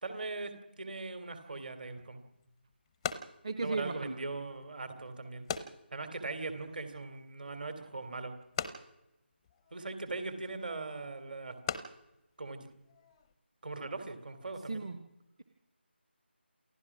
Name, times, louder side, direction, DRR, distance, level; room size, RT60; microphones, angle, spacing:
voice 1, 0.0-2.2 3.6-5.5 5.9-8.4 9.7-11.6 12.4-12.7 13.6-14.8, right 3 dB, 50° right, 8 dB, 3.2 m, -40 dB
sound 1, 2.0-13.4, left 6 dB, 10° left, 0.6 m, -44 dB
voice 2, 3.4-4.2 14.7-15.0, right 3 dB, 30° right, 7 dB, 1.2 m, -35 dB
28.0 x 15.0 x 6.1 m, 0.92 s
figure-of-eight pair, 160°, 6 cm